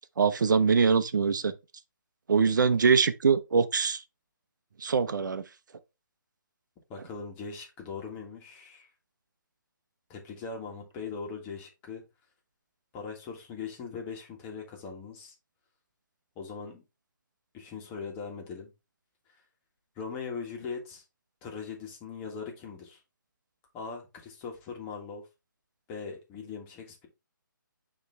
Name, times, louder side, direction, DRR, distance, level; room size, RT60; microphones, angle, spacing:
voice 1, 0.2-1.5 2.3-4.0 4.8-5.4, right 5 dB, 65° right, 0.8 m, -23 dB
voice 2, 6.9-8.9 10.1-12.0 12.9-15.3 16.3-16.8 17.5-18.7 19.9-21.0 21.4-23.0 23.7-25.2 25.9-27.1, left 5 dB, 20° left, 1.6 m, -40 dB
9.1 x 3.2 x 3.3 m
hypercardioid pair, 155°, 11 cm